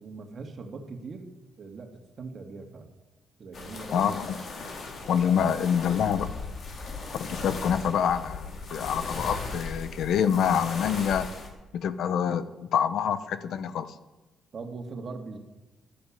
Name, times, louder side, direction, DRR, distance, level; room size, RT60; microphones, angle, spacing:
voice 1, 0.0-1.3 1.6-2.9 3.4-4.1 7.7-7.9 8.4-8.6 14.5-15.4, right 4 dB, 40° right, 4 dB, 2.3 m, -41 dB
sound 1, 3.5-11.5, left 3 dB, 50° left, 3.2 m, -37 dB
voice 2, 3.9-4.4 5.1-6.3 7.2-11.3 11.7-13.9, left 8 dB, 70° left, 13 dB, 1.0 m, -26 dB
12.5 x 11.5 x 8.8 m, 1.0 s
cardioid pair, 150°, 0 cm